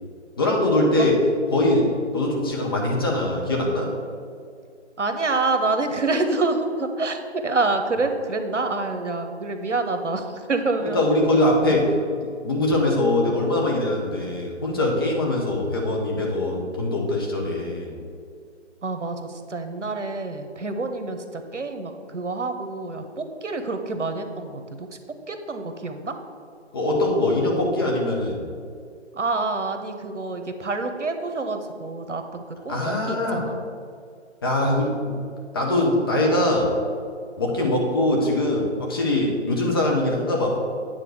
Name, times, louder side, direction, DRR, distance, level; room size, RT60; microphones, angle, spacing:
voice 1, 0.4-1.2 1.5-3.9 10.9-11.9 12.2-18.0 26.7-28.5 32.7-33.5 34.4-35.2 35.5-36.8 37.4-40.6, left 1 dB, 20° left, -2 dB, 0.8 m, -22 dB
voice 2, 5.0-11.0 18.8-24.9 25.3-26.2 29.1-33.6, right 3 dB, 85° right, 7 dB, 1.1 m, -27 dB
9.2 x 3.8 x 6.6 m, 2.2 s
figure-of-eight pair, 155°, 35 cm